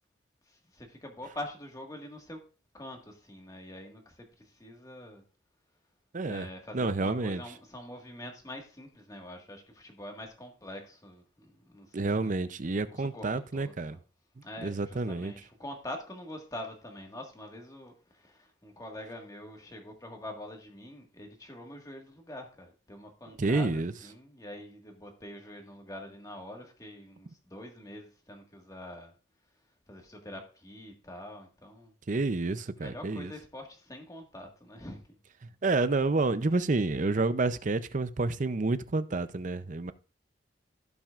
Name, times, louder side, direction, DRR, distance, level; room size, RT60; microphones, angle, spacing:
voice 1, 0.5-2.4 2.7-5.2 6.2-12.0 12.2-12.6 12.9-13.3 13.5-14.0 14.4-29.1 29.9-31.9 32.8-35.0, left 1 dB, 20° left, 1.7 m, -45 dB
voice 2, 6.1-6.5 6.7-7.4 11.9-14.0 14.6-15.3 23.4-23.9 32.1-33.3 35.6-39.9, right 3 dB, 40° right, 0.6 m, -29 dB
16.0 x 6.0 x 2.5 m
head